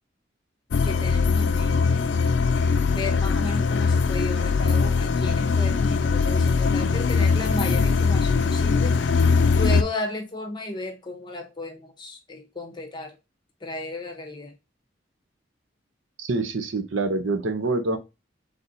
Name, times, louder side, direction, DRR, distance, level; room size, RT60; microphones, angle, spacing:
sound 1, 0.7-9.8, left 5 dB, 60° left, 0.4 m, -21 dB
voice 1, 0.8-2.1 2.9-9.0 9.5-13.2 13.6-14.5, left 2 dB, 25° left, 0.8 m, -34 dB
voice 2, 16.2-18.0, right 3 dB, 80° right, 0.7 m, -26 dB
4.1 x 3.4 x 2.6 m
head